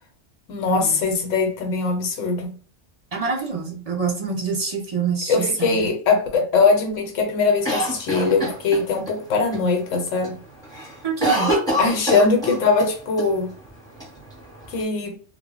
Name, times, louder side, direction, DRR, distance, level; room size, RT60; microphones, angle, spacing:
voice 1, 0.5-2.5 5.3-10.4 11.8-13.5 14.7-15.2, left 4 dB, 85° left, 1.1 m, -21 dB
voice 2, 3.1-5.8 11.0-11.5, right 5 dB, 35° right, 0.7 m, -26 dB
Cough, 7.6-9.1 9.5-9.6 9.9-10.3 10.6-12.9 13.2-13.3 14.0-14.8, equal, 5° left, 0.8 m, -25 dB
2.1 x 2.0 x 3.7 m
omnidirectional pair, 1.3 m